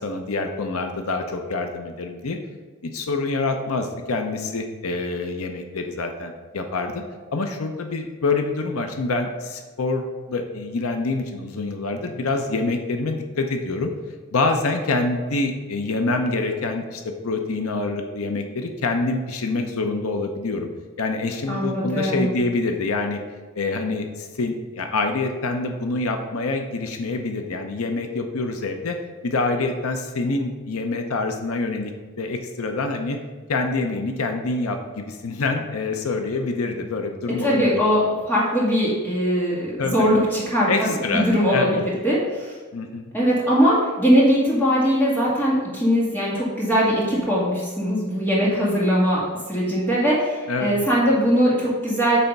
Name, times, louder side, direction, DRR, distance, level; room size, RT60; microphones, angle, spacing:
voice 1, 0.0-2.4 2.8-7.0 7.3-13.9 14.3-20.7 21.0-23.2 23.5-29.0 29.2-33.2 33.5-37.8 39.8-40.1 40.7-41.8 42.7-43.1 50.5-50.7, left 3 dB, 85° left, 5 dB, 0.7 m, -26 dB
voice 2, 21.5-22.4 37.4-42.6 43.1-52.3, equal, 10° left, -7 dB, 2.1 m, -21 dB
8.5 x 3.4 x 5.3 m, 1.3 s
head